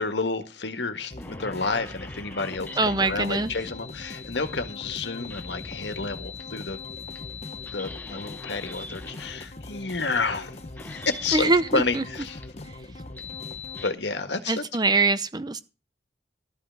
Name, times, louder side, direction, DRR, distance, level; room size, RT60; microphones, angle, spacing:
voice 1, 0.0-6.8 7.7-12.4 13.8-14.6, left 3 dB, 80° left, 1.6 m, -30 dB
sound 1, 1.1-13.9, left 2 dB, 35° left, 0.9 m, -42 dB
sound 2, 1.2-13.9, left 5 dB, 10° left, 1.0 m, -43 dB
voice 2, 2.8-3.5 11.3-12.0 14.5-15.6, right 3 dB, 25° right, 0.6 m, -23 dB
13.0 x 5.8 x 7.7 m
head